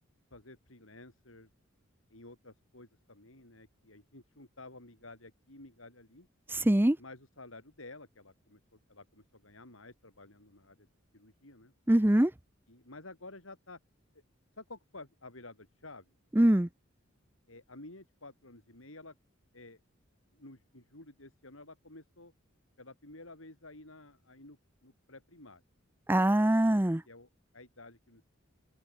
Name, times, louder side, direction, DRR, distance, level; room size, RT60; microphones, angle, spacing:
voice 1, 0.3-1.5 2.1-6.3 7.0-8.6 8.9-10.9 11.1-11.7 12.7-13.8 14.6-16.1 17.5-19.1 19.5-19.8 20.3-22.3 22.8-24.6 24.8-25.6 27.1-28.3, left 2 dB, 85° left, 6.8 m, -52 dB
voice 2, 6.6-7.0 11.9-12.3 16.4-16.7 26.1-27.0, right 1 dB, 10° right, 0.7 m, -23 dB
open air
head